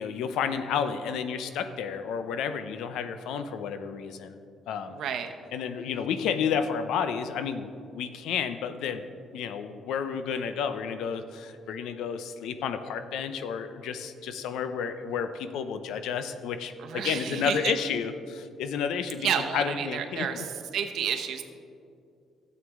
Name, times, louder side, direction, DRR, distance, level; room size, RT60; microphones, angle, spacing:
voice 1, 0.0-4.4 4.7-4.9 5.5-9.0 9.3-19.3 19.5-20.4, left 7 dB, 80° left, 10 dB, 0.6 m, -31 dB
voice 2, 4.9-5.3 16.8-17.7 19.2-21.4, right 8 dB, 75° right, 6 dB, 0.9 m, -31 dB
12.5 x 8.1 x 3.6 m, 2.4 s
cardioid pair, 90°, 0 cm